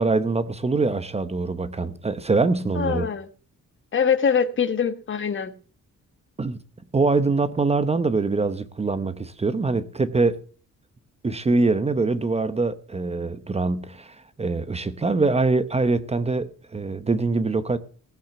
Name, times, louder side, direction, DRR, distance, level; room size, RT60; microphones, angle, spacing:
voice 1, 0.0-3.1 6.4-6.6 6.9-10.4 11.2-17.8, right 3 dB, 20° right, 0.9 m, -23 dB
voice 2, 2.7-3.3 3.9-5.5, left 6 dB, 40° left, 1.3 m, -23 dB
18.0 x 8.8 x 6.8 m
wide cardioid pair, 160°, 32 cm